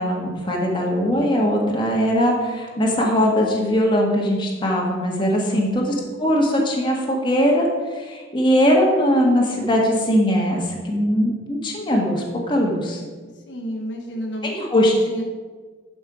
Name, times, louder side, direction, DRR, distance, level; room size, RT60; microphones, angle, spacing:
voice 1, 0.0-13.0 14.4-14.9, equal, 25° left, -1 dB, 1.5 m, -20 dB
voice 2, 5.2-5.7 13.3-15.2, equal, 70° left, 2 dB, 1.1 m, -31 dB
11.0 x 5.3 x 4.9 m, 1.5 s
head